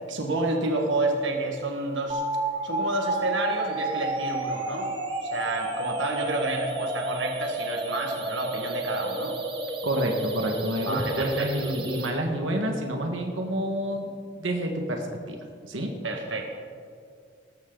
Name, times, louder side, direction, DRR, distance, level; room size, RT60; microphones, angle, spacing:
voice 1, 0.1-2.2 2.6-4.9 5.2-9.4 10.8-11.7 16.0-16.5, right 2 dB, 75° right, 2 dB, 1.6 m, -29 dB
sound 1, 2.1-12.1, right 2 dB, 25° right, 1.4 m, -31 dB
voice 2, 9.8-15.4 15.6-15.9, right 1 dB, 90° right, 2 dB, 1.7 m, -28 dB
18.5 x 14.0 x 4.0 m, 2.2 s
head